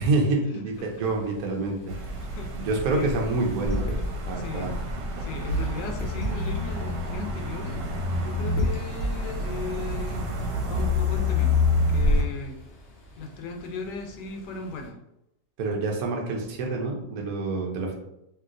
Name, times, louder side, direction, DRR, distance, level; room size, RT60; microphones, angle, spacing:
voice 1, 0.0-1.8 2.6-3.9 4.3-4.7 15.6-17.9, right 3 dB, 65° right, 0 dB, 1.1 m, -27 dB
voice 2, 0.5-1.1 1.9-3.1 4.3-4.7 5.2-7.8 8.1-10.3 10.6-12.6 13.2-15.0, left 4 dB, 80° left, 3 dB, 1.2 m, -37 dB
sound 1, 0.7-14.9, equal, 60° left, 0.6 m, -39 dB
sound 2, 1.9-12.2, left 2 dB, 85° right, 1.3 m, -27 dB
3.2 x 2.8 x 2.4 m, 0.83 s
omnidirectional pair, 1.9 m